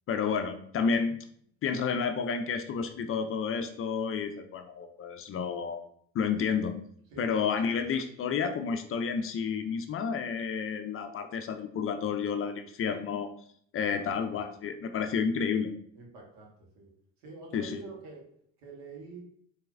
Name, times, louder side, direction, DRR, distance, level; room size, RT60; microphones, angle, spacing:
voice 1, 0.1-1.2 1.6-5.8 6.1-6.8 7.2-13.3 13.7-15.7 17.5-17.8, left 6 dB, 35° left, 7 dB, 0.5 m, -30 dB
voice 2, 7.1-7.8 13.8-14.4 15.9-16.9 17.2-18.2 18.6-19.2, right 3 dB, 70° right, -2 dB, 1.7 m, -47 dB
4.5 x 3.1 x 2.5 m, 0.64 s
hypercardioid pair, 65°, 37 cm